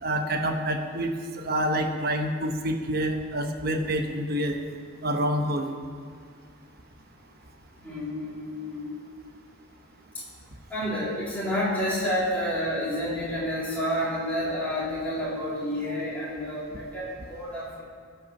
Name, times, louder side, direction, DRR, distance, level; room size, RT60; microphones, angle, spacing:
voice 1, 0.0-4.6 5.0-5.7, right 1 dB, 45° right, 4 dB, 1.0 m, -27 dB
voice 2, 7.8-9.0 10.7-17.8, equal, 5° left, -9 dB, 3.8 m, -29 dB
17.5 x 5.9 x 7.1 m, 2.1 s
head